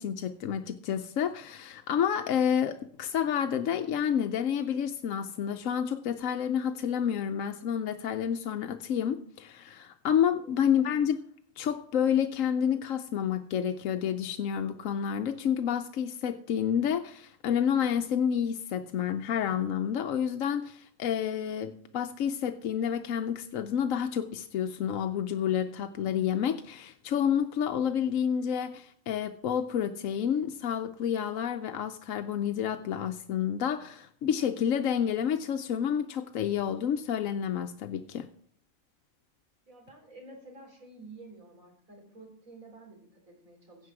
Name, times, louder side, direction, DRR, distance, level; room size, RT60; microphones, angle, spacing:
voice 1, 0.0-11.2 11.6-38.3, left 8 dB, 80° left, 8 dB, 1.1 m, -29 dB
voice 2, 10.4-10.7 39.7-43.9, right 2 dB, 80° right, 1 dB, 4.3 m, -50 dB
15.5 x 7.2 x 4.8 m, 0.62 s
omnidirectional pair, 1.4 m